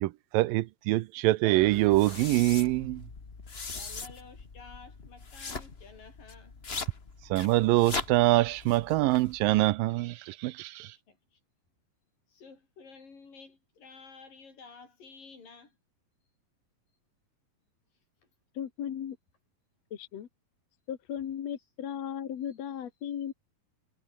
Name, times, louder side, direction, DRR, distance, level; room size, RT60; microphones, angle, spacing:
voice 1, 0.0-3.0 7.3-11.0, right 18 dB, 80° right, 2.4 m, -25 dB
sound 1, 1.6-9.7, left 4 dB, 35° left, 0.9 m, -41 dB
voice 2, 3.7-6.5 10.9-11.4 12.3-15.8, left 4 dB, 70° left, 7.6 m, -52 dB
voice 3, 18.6-19.2 19.9-20.3 20.9-23.3, left 9 dB, 55° left, 2.5 m, -36 dB
omnidirectional pair, 4.1 m